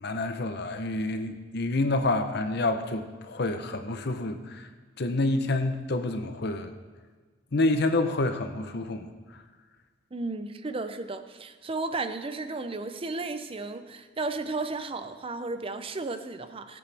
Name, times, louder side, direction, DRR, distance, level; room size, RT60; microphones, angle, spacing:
voice 1, 0.0-4.7 5.0-6.7 7.5-9.1, left 2 dB, 60° left, 7 dB, 0.8 m, -28 dB
voice 2, 10.1-16.8, right 3 dB, 30° right, 10 dB, 0.6 m, -34 dB
18.5 x 8.4 x 3.4 m, 1.5 s
head